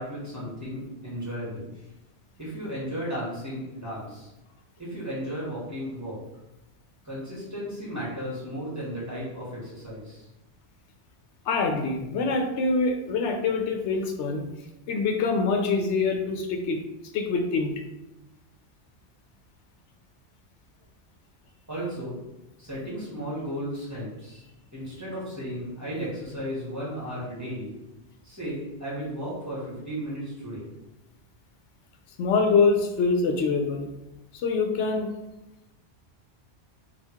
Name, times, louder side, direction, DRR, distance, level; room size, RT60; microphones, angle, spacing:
voice 1, 0.0-1.7 2.4-4.3 4.8-6.2 7.0-10.3 21.7-22.2 22.6-24.4 24.7-27.7 28.2-30.6, equal, 15° right, -8 dB, 1.5 m, -34 dB
voice 2, 11.5-14.5 14.9-16.8 17.1-17.7 32.2-33.9 34.3-35.1, left 4 dB, 85° left, 4 dB, 0.9 m, -25 dB
3.5 x 2.4 x 4.3 m, 0.96 s
omnidirectional pair, 1.2 m